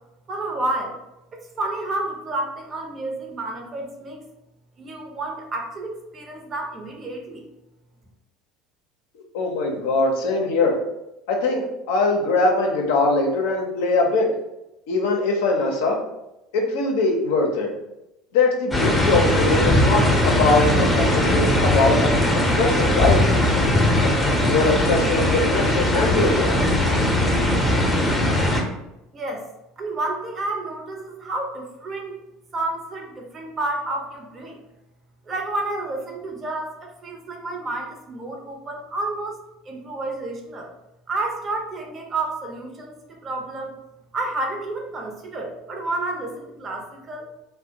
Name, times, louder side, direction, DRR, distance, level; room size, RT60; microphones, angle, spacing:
voice 1, 0.3-1.0 1.3-4.2 4.8-7.5 29.1-29.5 29.8-32.2 32.5-34.6 35.3-40.7 41.1-43.8 44.1-47.3, right 2 dB, 35° right, 2 dB, 0.6 m, -30 dB
voice 2, 9.3-10.8 11.3-14.3 14.9-16.0 16.5-17.7 18.3-23.2 24.0-26.6, left 3 dB, 70° left, 1 dB, 0.5 m, -22 dB
sound 1, 18.7-28.6, left 1 dB, 15° left, 0.6 m, -19 dB
2.4 x 2.0 x 2.8 m, 0.93 s
hypercardioid pair, 70°, 0 cm